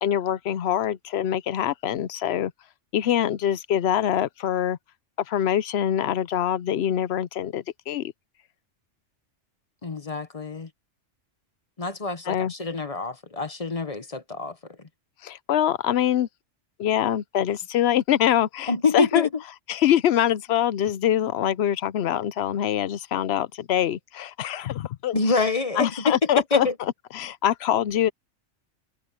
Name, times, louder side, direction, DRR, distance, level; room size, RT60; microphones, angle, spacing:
voice 1, 0.0-2.5 2.9-4.8 5.3-8.1 12.3-12.5 15.2-16.3 16.8-19.3 19.7-25.1 25.8-26.7 27.1-28.1, left 10 dB, 65° left, 0.8 m, -24 dB
voice 2, 9.8-10.7 11.8-14.6 18.7-19.3 25.1-26.7, left 4 dB, 35° left, 0.9 m, -26 dB
omnidirectional pair, 1.3 m